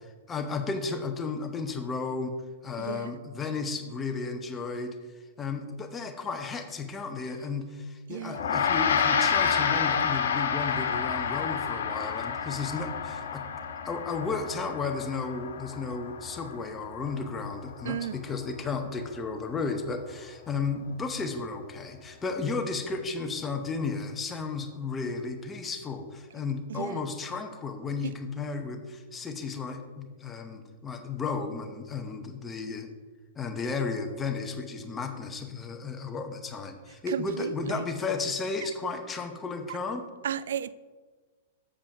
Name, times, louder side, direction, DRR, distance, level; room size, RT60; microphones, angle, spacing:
voice 1, 0.3-2.3 2.6-4.9 5.4-13.4 13.8-32.9 33.4-40.1, left 4 dB, 15° left, 5 dB, 0.8 m, -33 dB
voice 2, 2.8-3.1 8.1-8.4 17.8-18.2 26.7-27.0 28.0-28.1 37.1-37.8 40.2-40.7, right 9 dB, 75° right, 17 dB, 0.3 m, -34 dB
Gong, 8.3-18.0, left 7 dB, 90° left, 1.1 m, -29 dB
7.3 x 5.0 x 6.5 m, 1.4 s
hypercardioid pair, 160°, 0 cm